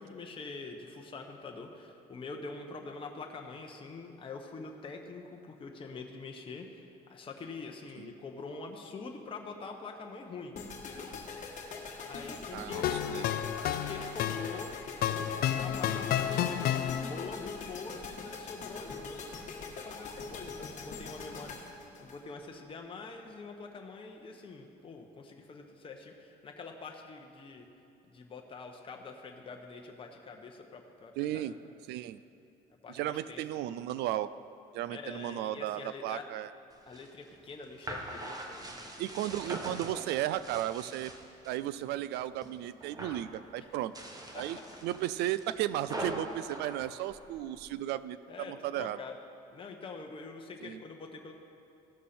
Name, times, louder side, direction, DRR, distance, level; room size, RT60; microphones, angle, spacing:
voice 1, 0.0-10.5 10.8-11.1 12.0-12.9 13.4-14.7 15.0-16.6 16.9-21.6 22.0-27.6 28.1-31.5 32.8-33.4 34.9-36.2 36.8-39.2 44.3-44.8 48.3-49.1 49.5-51.3, left 4 dB, 30° left, 2 dB, 0.9 m, -45 dB
sound 1, 10.5-22.7, left 4 dB, 50° left, 1.4 m, -43 dB
voice 2, 12.5-13.5 31.2-31.5 31.9-32.2 32.9-34.3 34.7-36.5 39.0-41.1 41.5-43.9 44.3-49.0 50.6-50.8, right 13 dB, 85° right, 15 dB, 0.4 m, -35 dB
sound 2, 12.7-17.4, left 10 dB, 65° left, 0.5 m, -31 dB
sound 3, 36.7-41.6 42.0-42.5 42.8-43.3 43.8-47.7, right 1 dB, 20° right, 1.1 m, -43 dB
16.0 x 6.2 x 4.3 m, 2.7 s
cardioid pair, 110°, 17 cm